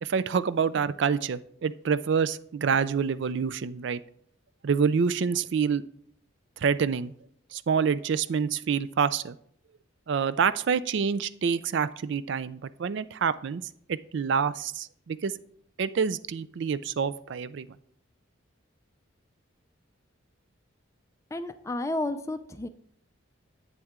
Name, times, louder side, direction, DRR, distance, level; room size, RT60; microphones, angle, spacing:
voice 1, 0.0-4.0 4.6-5.8 6.6-7.1 7.5-9.4 10.1-13.6 13.9-15.3 15.8-17.7, right 6 dB, 60° right, 16 dB, 0.4 m, -27 dB
voice 2, 21.3-22.7, left 2 dB, 15° left, 11 dB, 0.4 m, -31 dB
10.5 x 8.4 x 3.7 m, 0.67 s
head